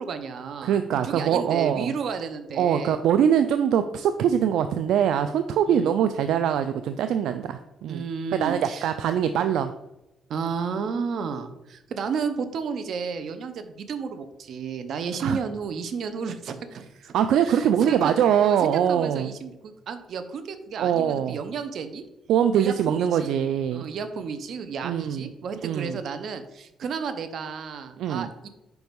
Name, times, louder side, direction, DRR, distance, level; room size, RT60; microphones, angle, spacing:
voice 1, 0.0-3.0 5.7-5.9 7.9-8.9 10.3-16.8 17.4-22.0 22.5-23.3 23.7-28.5, right 5 dB, 65° right, 10 dB, 0.7 m, -32 dB
voice 2, 0.6-1.9 2.6-8.0 8.4-9.7 15.2-15.4 17.1-19.3 20.8-21.4 22.3-23.9 24.8-25.3 25.6-26.0 28.0-28.3, right 9 dB, 80° right, 9 dB, 0.3 m, -23 dB
5.2 x 4.7 x 5.2 m, 0.94 s
cardioid pair, 90°, 0 cm